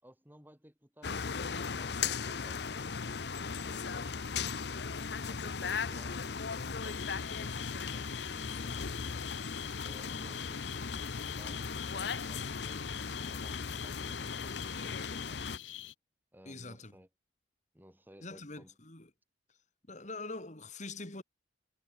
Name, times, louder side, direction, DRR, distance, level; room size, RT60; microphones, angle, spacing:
voice 1, 0.0-4.1 4.7-9.2 9.8-15.5 16.3-17.1 17.7-18.8, equal, 10° right, 6.9 m, -58 dB
sound 1, 1.0-15.6, left 5 dB, 60° left, 0.8 m, -37 dB
sound 2, 6.8-15.9, left 13 dB, 85° left, 1.0 m, -46 dB
voice 2, 16.5-16.9 18.2-19.1 19.9-21.2, left 3 dB, 40° left, 2.8 m, -44 dB
head